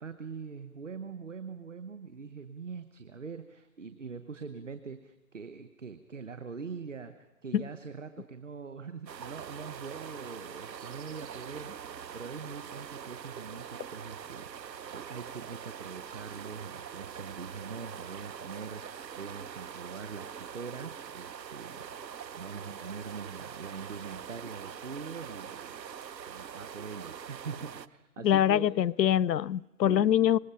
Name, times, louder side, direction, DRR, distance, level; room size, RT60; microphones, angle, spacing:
voice 1, 0.0-25.7 26.3-28.7 29.8-30.4, right 5 dB, 50° right, 10 dB, 1.0 m, -43 dB
sound 1, 9.1-27.9, right 8 dB, 90° right, 0.8 m, -43 dB
voice 2, 28.2-30.4, left 10 dB, 85° left, 25 dB, 0.6 m, -24 dB
25.5 x 20.0 x 5.7 m, 1.1 s
hypercardioid pair, 170°, 49 cm